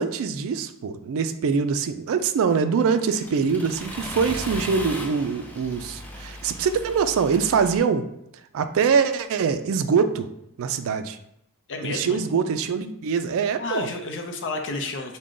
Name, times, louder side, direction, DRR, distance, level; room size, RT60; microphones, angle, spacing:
voice 1, 0.0-8.0 8.5-10.3 10.6-11.2 11.8-13.9, right 6 dB, 65° right, 10 dB, 0.3 m, -23 dB
Accelerating revving vroom, 2.5-7.8, equal, 5° left, 0.4 m, -37 dB
voice 2, 11.7-12.2 13.6-15.2, left 3 dB, 55° left, 4 dB, 0.6 m, -31 dB
4.8 x 2.2 x 3.7 m, 0.79 s
head